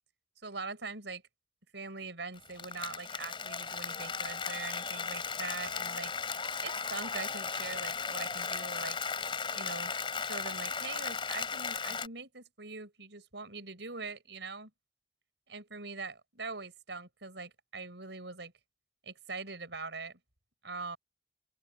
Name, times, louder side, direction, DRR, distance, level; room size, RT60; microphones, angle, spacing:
voice 1, 0.4-1.2 1.7-6.1 6.6-9.0 9.5-9.9 10.2-14.7 15.5-18.5 19.0-20.2 20.6-21.0, right 4 dB, 90° right, 6.2 m, -42 dB
Applause, 2.4-12.1, left 5 dB, 30° left, 4.5 m, -36 dB
open air
head